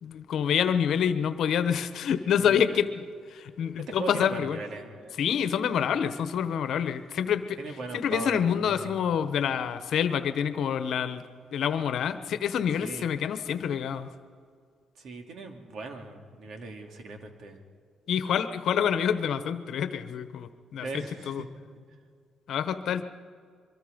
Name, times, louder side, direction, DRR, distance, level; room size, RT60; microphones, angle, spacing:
voice 1, 0.0-3.0 3.3-4.6 5.2-7.6 7.9-11.2 11.5-14.1 18.1-21.4 22.5-23.0, left 8 dB, 70° left, 11 dB, 1.1 m, -27 dB
voice 2, 2.4-2.8 3.9-5.2 7.6-8.9 12.8-13.1 15.0-17.6 20.8-21.5 21.8-21.9, right 3 dB, 70° right, 4 dB, 2.5 m, -39 dB
23.5 x 23.5 x 5.3 m, 2.1 s
cardioid pair, 90°, 0 cm